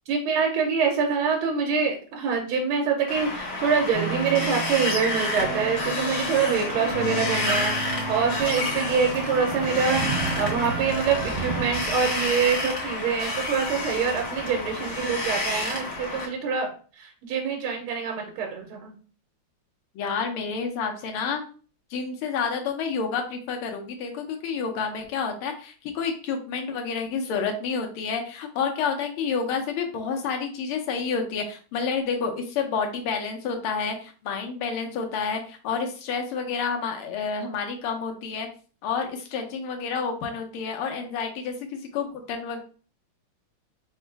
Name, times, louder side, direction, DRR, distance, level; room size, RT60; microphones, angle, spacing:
voice 1, 0.1-16.7 17.0-18.9, right 6 dB, 85° right, 2 dB, 1.6 m, -25 dB
Wind, 3.1-16.3, left 2 dB, 45° left, 1.0 m, -30 dB
sound 1, 3.9-11.3, right 3 dB, 50° right, 1.3 m, -33 dB
sound 2, 5.1-16.2, right 4 dB, ahead, 1.0 m, -38 dB
voice 2, 19.9-21.4 21.9-38.5 38.8-42.6, left 5 dB, 90° left, 4 dB, 1.7 m, -29 dB
4.1 x 2.1 x 4.5 m, 0.40 s
omnidirectional pair, 2.3 m